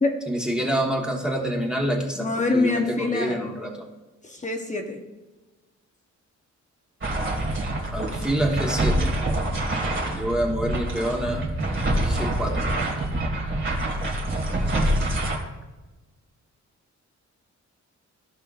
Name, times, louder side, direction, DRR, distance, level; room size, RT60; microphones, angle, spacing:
voice 1, 0.3-2.3 2.5-3.8 7.9-9.2 10.1-11.4 12.0-12.7, equal, 5° right, 0 dB, 1.3 m, -27 dB
voice 2, 2.2-3.4 4.2-5.0, left 3 dB, 25° left, 3 dB, 0.9 m, -25 dB
sound 1, 7.0-15.4, right 1 dB, 40° right, 1.9 m, -26 dB
14.0 x 5.6 x 2.5 m, 1.2 s
wide cardioid pair, 125°, 30 cm